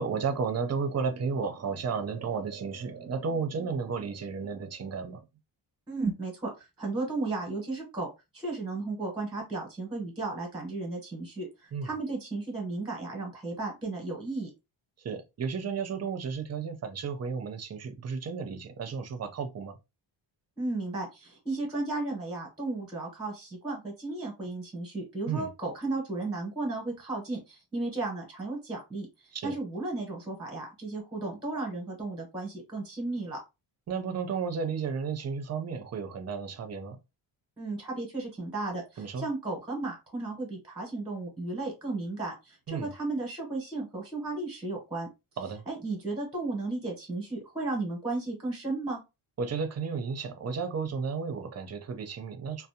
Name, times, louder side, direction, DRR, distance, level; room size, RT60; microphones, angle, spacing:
voice 1, 0.0-5.2 11.7-11.9 15.0-19.8 25.3-25.5 29.3-29.5 33.9-37.0 39.0-39.3 42.7-42.9 45.4-45.6 49.4-52.7, right 5 dB, 35° right, 0.5 m, -33 dB
voice 2, 5.9-14.5 20.6-33.4 37.6-45.1 45.7-49.0, right 2 dB, 10° right, 0.9 m, -34 dB
2.5 x 2.0 x 2.7 m
wide cardioid pair, 135°, 47 cm